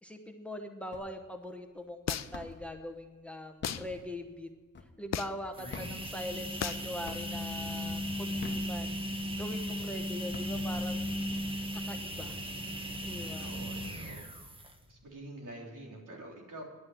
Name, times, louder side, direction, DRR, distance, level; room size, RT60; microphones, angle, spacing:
voice 1, 0.0-4.5 5.0-9.0 9.4-11.0 11.7-12.4 13.0-13.5, left 1 dB, 5° left, 5 dB, 1.0 m, -42 dB
sound 1, 0.9-1.4 1.8-2.8 3.4-5.2 5.6-6.8 7.1-7.6 8.2-9.3 9.8-9.9 10.1-11.0, left 4 dB, 35° left, 1.2 m, -46 dB
sound 2, 2.1-2.5 3.6-3.9 5.1-5.5 6.6-6.9, left 9 dB, 55° left, 0.6 m, -34 dB
sound 3, 5.5-14.9, equal, 15° right, 1.4 m, -36 dB
voice 2, 5.6-6.0 13.4-14.3 14.5-16.6, right 1 dB, 75° right, -1 dB, 3.8 m, -47 dB
11.0 x 9.6 x 8.9 m, 1.4 s
wide cardioid pair, 140°, 32 cm